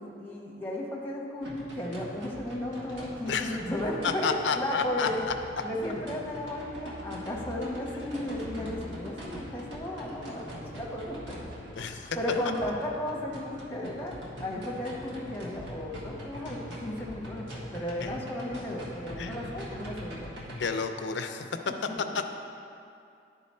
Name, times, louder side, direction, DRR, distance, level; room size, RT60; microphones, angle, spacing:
voice 1, 0.0-5.3 5.6-11.5 11.8-20.3 21.6-22.1, left 1 dB, 10° left, -3 dB, 0.9 m, -34 dB
sound 1, 1.4-20.7, equal, 85° right, 1.4 m, -42 dB
voice 2, 3.3-3.6 4.0-5.1 11.8-12.1 18.0-18.1 19.2-19.3 20.6-21.4 22.0-22.3, left 5 dB, 80° left, 7 dB, 0.4 m, -30 dB
11.0 x 3.9 x 4.2 m, 2.5 s
head